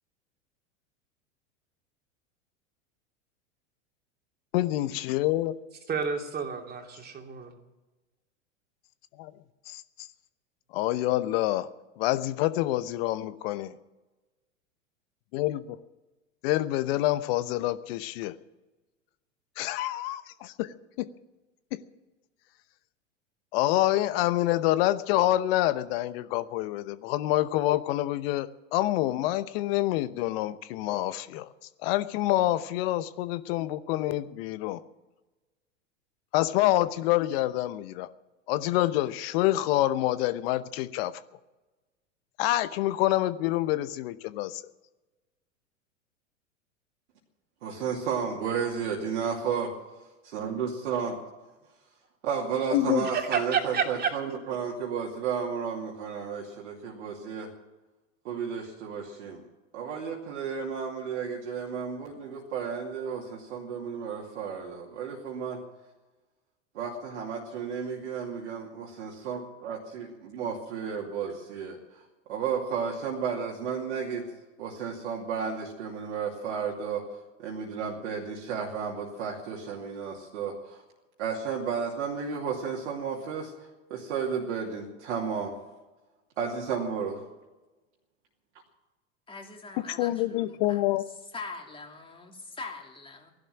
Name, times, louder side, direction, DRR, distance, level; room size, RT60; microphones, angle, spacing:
voice 1, 4.5-5.5 9.2-9.3 9.7-9.8 10.7-11.7 12.0-13.7 15.3-15.8 16.4-18.3 19.6-21.1 21.7-21.8 23.5-31.5 31.8-34.8 36.3-38.1 38.5-41.1 42.4-44.6 52.7-53.1 90.0-91.0, left 15 dB, 50° left, 15 dB, 0.9 m, -27 dB
voice 2, 5.9-7.5 53.0-54.1, right 6 dB, 25° right, 3 dB, 2.8 m, -30 dB
voice 3, 47.6-49.7 50.3-51.2 52.2-57.5 58.2-59.4 59.7-65.6 66.7-72.0 72.3-74.3 74.6-77.0 77.4-80.8 81.2-85.5 86.4-87.2, right 6 dB, 65° right, -2 dB, 2.7 m, -33 dB
voice 4, 89.3-90.8 91.3-93.3, left 3 dB, 15° left, 1 dB, 3.2 m, -42 dB
16.0 x 11.5 x 7.5 m, 1.1 s
figure-of-eight pair, 90°, 38 cm